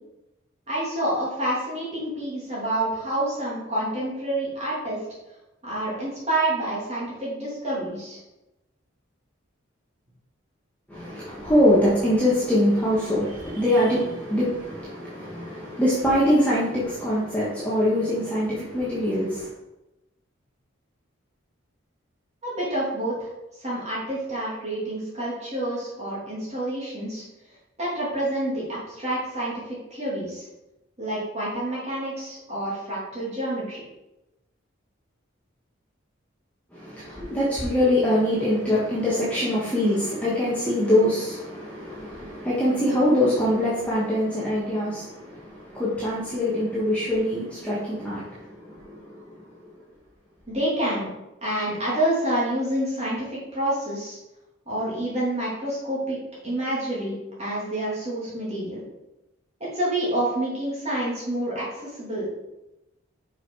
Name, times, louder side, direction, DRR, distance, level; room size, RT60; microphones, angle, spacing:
voice 1, 0.7-5.0 5.6-8.2 22.4-23.3 23.6-27.2 27.8-30.5 31.0-33.8 50.5-51.1 51.4-54.2 54.7-58.8 59.6-62.3, right 1 dB, 30° right, -7 dB, 2.7 m, -28 dB
voice 2, 10.9-19.5 36.7-49.2, left 1 dB, 5° left, -9 dB, 1.4 m, -23 dB
6.0 x 4.9 x 4.7 m, 0.95 s
head